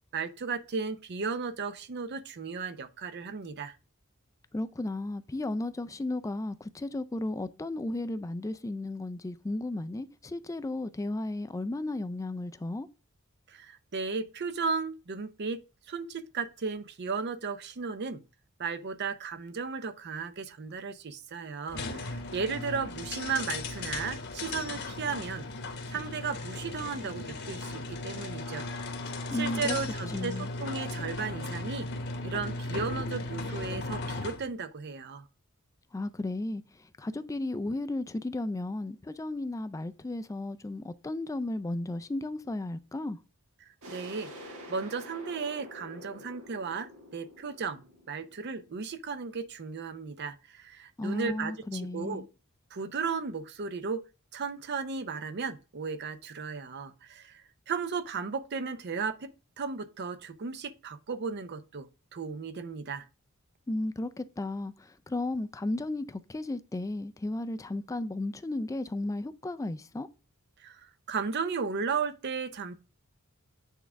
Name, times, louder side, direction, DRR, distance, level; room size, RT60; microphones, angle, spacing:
voice 1, 0.1-3.8 13.5-18.2 18.6-25.5 25.9-28.7 29.3-31.9 32.2-35.3 43.9-52.2 52.7-54.0 54.3-59.3 59.6-63.1 70.6-72.7, right 5 dB, 50° right, 0.6 m, -35 dB
voice 2, 4.5-12.9 29.3-29.8 30.1-30.5 35.9-36.6 37.0-43.2 51.0-52.3 63.7-70.1, left 2 dB, 15° left, 0.3 m, -34 dB
sound 1, 21.7-34.5, left 2 dB, 55° left, 1.0 m, -37 dB
sound 2, 43.8-49.3, equal, 80° right, 1.4 m, -48 dB
8.3 x 3.6 x 3.4 m
head